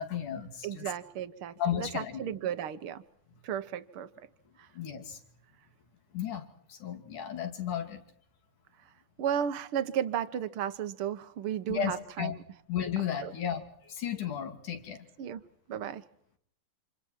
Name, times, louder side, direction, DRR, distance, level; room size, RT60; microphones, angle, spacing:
voice 1, 0.0-0.9 1.6-2.2 4.8-5.2 6.1-6.4 6.7-8.0 11.7-12.4 12.7-15.1, left 9 dB, 80° left, 4.2 m, -34 dB
voice 2, 0.6-3.0 3.4-4.1 9.2-12.3 13.2-13.3 15.2-15.4 15.7-16.0, right 9 dB, 60° right, 1.5 m, -34 dB
30.0 x 27.0 x 4.6 m
omnidirectional pair, 3.5 m